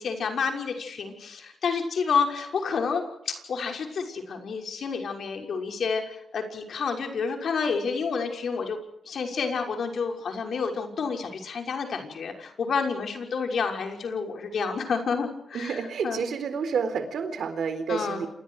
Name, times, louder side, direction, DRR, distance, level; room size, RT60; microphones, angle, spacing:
voice 1, 0.0-8.8 9.0-16.2 17.9-18.3, left 5 dB, 70° left, 4 dB, 6.1 m, -29 dB
voice 2, 15.5-18.3, right 6 dB, 85° right, 10 dB, 4.1 m, -29 dB
29.5 x 28.0 x 5.0 m, 0.80 s
cardioid pair, 90°, 0 cm